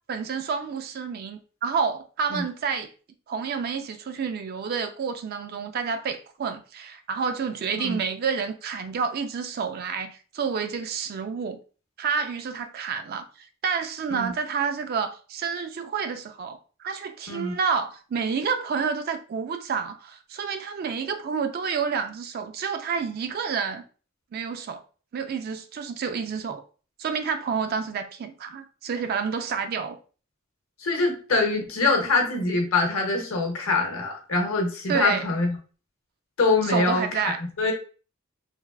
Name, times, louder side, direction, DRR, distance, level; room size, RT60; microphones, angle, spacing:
voice 1, 0.1-2.9 3.3-11.6 12.0-13.2 13.6-23.8 24.3-24.8 25.1-26.6 27.0-30.0 34.9-35.2 36.6-37.4, right 6 dB, 45° right, 0.3 m, -29 dB
voice 2, 30.8-35.6 36.4-37.7, left 3 dB, 75° left, 0.8 m, -24 dB
3.2 x 2.4 x 2.3 m
head